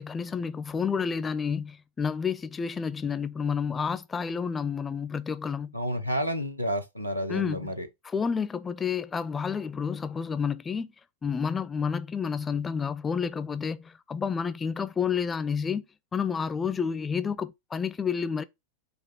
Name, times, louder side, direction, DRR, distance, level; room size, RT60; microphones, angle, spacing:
voice 1, 0.0-5.8 7.3-7.6 8.0-10.9 11.2-15.8 16.1-18.4, left 6 dB, 15° left, 0.4 m, -30 dB
voice 2, 5.7-7.9, equal, 90° right, 0.7 m, -30 dB
5.2 x 2.3 x 4.2 m
figure-of-eight pair, 90°, 0 cm